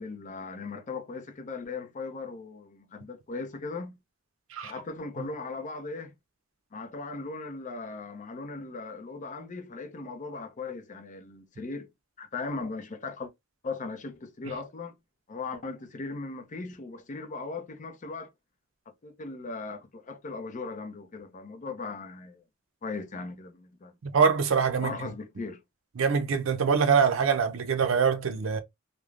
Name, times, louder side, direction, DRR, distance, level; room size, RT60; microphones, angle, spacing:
voice 1, 0.0-4.0 4.6-6.1 6.7-11.9 12.2-13.3 13.6-14.9 15.3-18.3 19.0-22.4 22.8-23.9 24.8-25.6, left 3 dB, 40° left, 0.5 m, -38 dB
voice 2, 24.1-25.1 26.0-28.6, right 6 dB, 75° right, 0.5 m, -24 dB
3.2 x 2.0 x 2.4 m
head